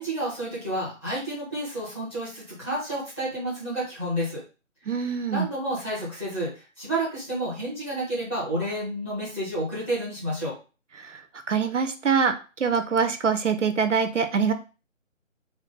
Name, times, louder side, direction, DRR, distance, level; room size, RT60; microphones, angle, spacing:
voice 1, 0.0-4.4 5.0-10.5, right 1 dB, 10° left, -8 dB, 0.8 m, -30 dB
voice 2, 4.9-5.5 11.0-11.2 11.5-14.5, right 6 dB, 65° right, 8 dB, 0.6 m, -24 dB
3.6 x 2.1 x 3.8 m, 0.33 s
figure-of-eight pair, 150°, 40 cm